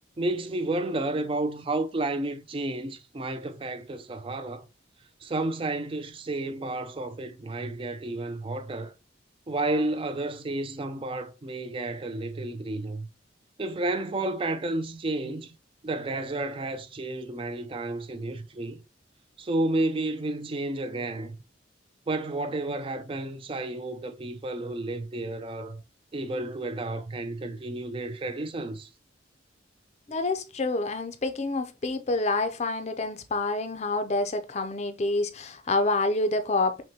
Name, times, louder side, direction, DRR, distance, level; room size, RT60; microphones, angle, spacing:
voice 1, 0.2-4.7 5.2-8.9 9.5-13.1 13.6-15.5 15.8-18.8 19.4-21.4 22.1-25.8 26.1-28.9, right 2 dB, 30° right, 0.4 m, -31 dB
voice 2, 30.1-36.8, left 2 dB, 35° left, 0.5 m, -27 dB
6.0 x 2.2 x 2.8 m
head